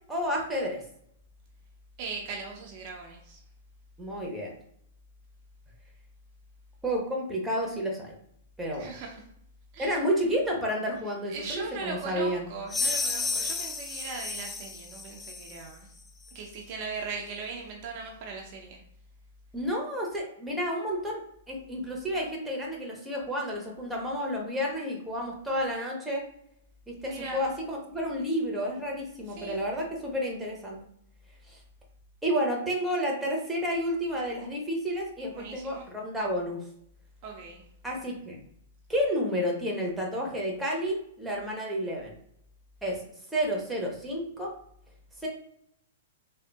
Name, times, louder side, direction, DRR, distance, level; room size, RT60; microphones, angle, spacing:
voice 1, 0.1-0.8 4.0-4.5 6.8-8.1 8.6-9.0 9.8-12.4 19.5-21.2 21.5-26.2 26.9-30.8 31.5-31.6 32.2-36.6 37.8-38.4 38.9-42.1 42.8-43.0 43.3-44.5 45.2-45.3, equal, 10° right, -1 dB, 1.0 m, -30 dB
voice 2, 2.0-3.4 8.8-9.2 9.7-10.0 11.3-15.9 16.3-18.8 27.1-27.4 29.4-29.6 35.3-35.8 37.2-37.6, right 4 dB, 45° right, 1 dB, 0.6 m, -39 dB
sound 1, 12.7-15.7, left 3 dB, 15° left, 0.4 m, -32 dB
3.7 x 2.4 x 2.3 m, 0.71 s
hypercardioid pair, 110°, 0 cm